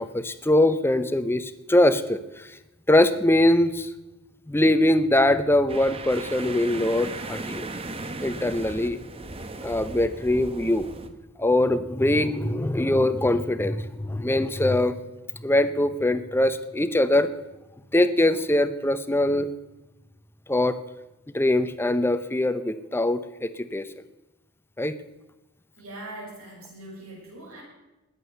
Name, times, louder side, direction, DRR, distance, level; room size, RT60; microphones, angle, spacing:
voice 1, 0.0-2.2 2.9-3.9 4.5-7.7 8.2-9.0 9.6-10.9 11.4-15.0 15.4-17.3 17.9-19.5 20.5-20.8 21.3-23.9 24.8-25.0, left 1 dB, 10° left, 12 dB, 0.7 m, -22 dB
sound 1, 5.7-11.1, right 2 dB, 25° right, 1.0 m, -37 dB
voice 2, 25.8-27.6, right 1 dB, 75° right, -3 dB, 7.6 m, -41 dB
20.5 x 8.4 x 6.9 m, 0.99 s
head